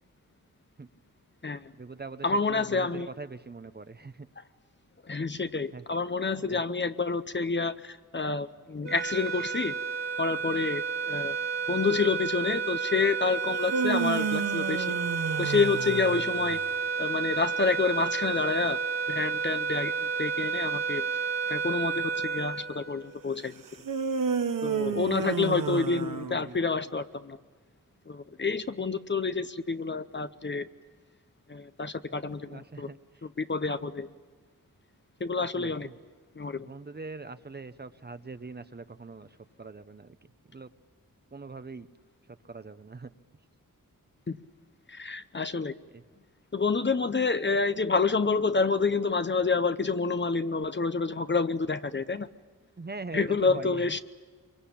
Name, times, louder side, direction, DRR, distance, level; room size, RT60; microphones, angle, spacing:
voice 1, 1.7-4.3 5.7-5.8 6.5-6.6 16.1-16.2 24.8-25.2 32.1-33.3 35.4-35.9 36.6-40.7 41.3-41.9 42.3-43.1 45.9-46.0 52.8-54.0, right 3 dB, 30° right, 12 dB, 0.8 m, -43 dB
voice 2, 2.2-3.1 5.1-9.7 10.2-11.4 11.7-15.0 15.4-16.6 17.0-18.8 19.1-19.9 20.2-21.1 21.5-23.6 24.6-27.4 28.1-30.7 31.5-32.9 33.2-34.1 35.2-35.9 36.4-36.7 44.3-44.4 44.9-45.7 46.5-52.3 53.1-54.0, left 4 dB, 35° left, 11 dB, 0.8 m, -28 dB
sound 1, 8.8-23.4, right 5 dB, 50° right, 2.0 m, -31 dB
sound 2, 13.5-16.7 23.8-26.8, right 6 dB, 70° right, 1.1 m, -31 dB
25.0 x 23.5 x 8.6 m, 1.4 s
wide cardioid pair, 95°, 33 cm